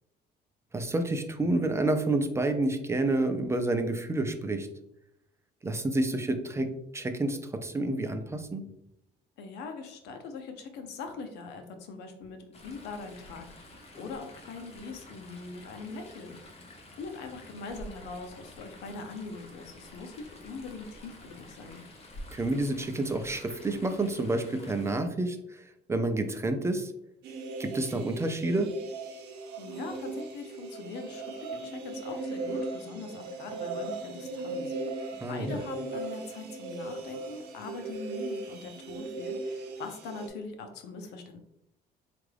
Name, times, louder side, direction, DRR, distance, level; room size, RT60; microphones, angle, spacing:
voice 1, 0.7-4.7 5.6-8.7 22.3-25.6 25.9-26.9 27.6-28.7 35.2-35.6, right 2 dB, 15° right, 7 dB, 0.5 m, -29 dB
voice 2, 9.4-16.4 16.9-21.8 29.6-41.4, left 4 dB, 85° left, 6 dB, 0.7 m, -42 dB
Chatter / Stream, 12.5-25.0, left 1 dB, 35° left, 0.9 m, -49 dB
sound 1, 27.2-40.3, right 3 dB, 85° right, 0.8 m, -38 dB
4.5 x 2.5 x 3.3 m, 0.78 s
cardioid pair, 110°, 17 cm